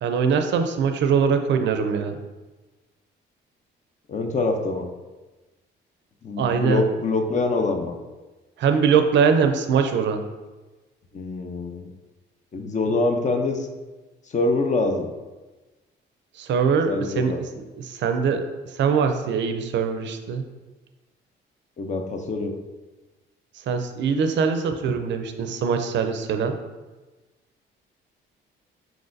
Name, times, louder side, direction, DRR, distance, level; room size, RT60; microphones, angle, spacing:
voice 1, 0.0-2.2 6.4-6.9 8.6-10.2 16.4-18.4 18.7-20.4 23.7-26.5, right 6 dB, 65° right, 7 dB, 0.5 m, -22 dB
voice 2, 4.1-4.9 6.2-8.0 11.1-11.9 12.5-13.7 14.3-15.1 16.9-17.4 21.8-22.5, left 3 dB, 40° left, 5 dB, 0.6 m, -25 dB
4.6 x 3.9 x 2.6 m, 1.2 s
cardioid pair, 90°, 20 cm